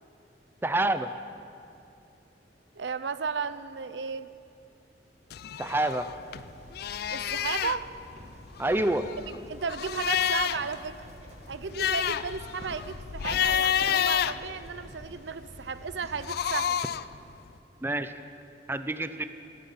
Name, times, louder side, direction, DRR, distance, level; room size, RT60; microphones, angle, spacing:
voice 1, 0.6-1.1 5.6-6.1 8.6-9.1 17.8-18.1 18.7-19.2, right 2 dB, 15° right, 10 dB, 0.5 m, -27 dB
voice 2, 2.8-4.3 7.1-7.9 9.5-11.0 11.5-16.8, right 5 dB, 85° right, 13 dB, 0.6 m, -34 dB
sound 1, 5.3-6.4 6.7-7.8 8.6-10.7 11.1-11.2 11.5-15.1 16.0-17.1, left 9 dB, 60° left, 0.4 m, -29 dB
sound 2, 5.3-17.3, equal, 40° right, 1.6 m, -48 dB
13.0 x 11.0 x 8.6 m, 2.6 s
head